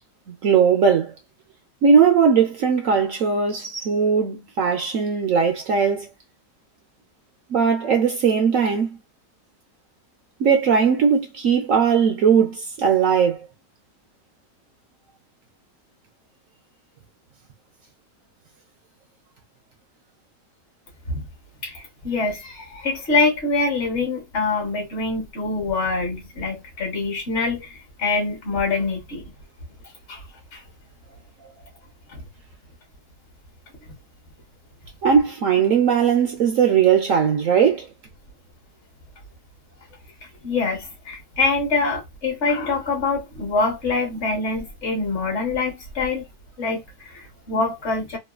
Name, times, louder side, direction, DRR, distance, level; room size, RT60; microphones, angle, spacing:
voice 1, 0.3-1.1 1.8-6.1 7.5-8.9 10.4-13.4 35.0-37.9, right 6 dB, 65° right, 0.9 m, -19 dB
voice 2, 21.6-29.2 30.1-30.2 30.5-30.6 32.1-32.2 40.4-46.3 46.6-48.2, left 3 dB, 45° left, 1.2 m, -25 dB
3.0 x 2.3 x 2.3 m
omnidirectional pair, 1.8 m